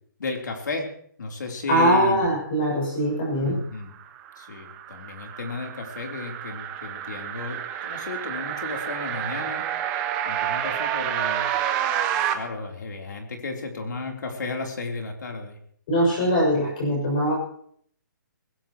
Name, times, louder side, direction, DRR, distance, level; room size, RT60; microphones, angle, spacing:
voice 1, 0.2-0.9 1.2-2.3 3.4-3.9 4.4-9.7 10.3-11.5 12.3-15.6, left 3 dB, 65° left, 2 dB, 3.4 m, -33 dB
voice 2, 1.7-3.6 15.9-17.4, right 1 dB, 25° left, -1 dB, 6.5 m, -22 dB
sound 1, 4.0-12.3, right 10 dB, 10° right, 0.5 m, -29 dB
20.5 x 17.0 x 3.0 m, 0.62 s
hypercardioid pair, 180°, 11 cm